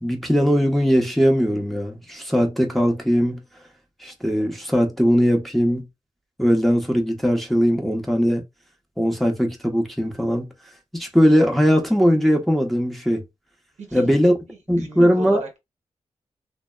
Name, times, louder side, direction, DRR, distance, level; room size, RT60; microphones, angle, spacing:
voice 1, 0.0-3.4 4.0-5.9 6.4-8.4 9.0-10.5 10.9-13.2 13.9-14.3 14.7-15.4, equal, ahead, 0.8 m, -19 dB
voice 2, 13.8-14.2 14.5-15.6, right 2 dB, 75° right, 0.9 m, -37 dB
2.7 x 2.1 x 2.3 m
cardioid pair, 40°, 12 cm